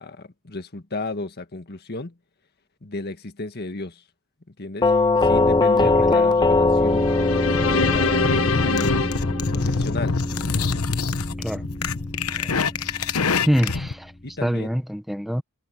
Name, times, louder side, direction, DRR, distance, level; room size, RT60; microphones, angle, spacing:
voice 1, 0.0-2.2 2.8-4.0 4.5-4.9 5.2-7.1 7.7-10.2 14.2-14.7, left 2 dB, 50° left, 1.8 m, -33 dB
Doorbell, 4.8-13.7, left 2 dB, 20° left, 0.8 m, -22 dB
voice 2, 5.8-6.3 11.4-11.6 12.3-12.5 13.5-14.1 14.4-15.4, equal, ahead, 1.0 m, -25 dB
sound 1, 6.9-10.3, left 4 dB, 70° left, 1.9 m, -26 dB
sound 2, 7.5-13.9, left 4 dB, 85° left, 1.1 m, -26 dB
head